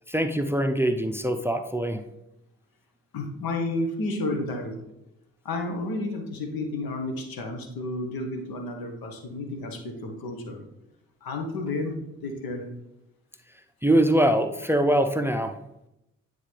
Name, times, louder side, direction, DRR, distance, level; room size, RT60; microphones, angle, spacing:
voice 1, 0.1-2.0 13.8-15.6, right 1 dB, 5° right, 7 dB, 0.5 m, -23 dB
voice 2, 3.1-4.8 5.4-10.6 11.2-11.9 12.2-12.6, left 2 dB, 75° left, 4 dB, 1.1 m, -31 dB
9.2 x 3.8 x 3.3 m, 0.87 s
supercardioid pair, 45°, 36 cm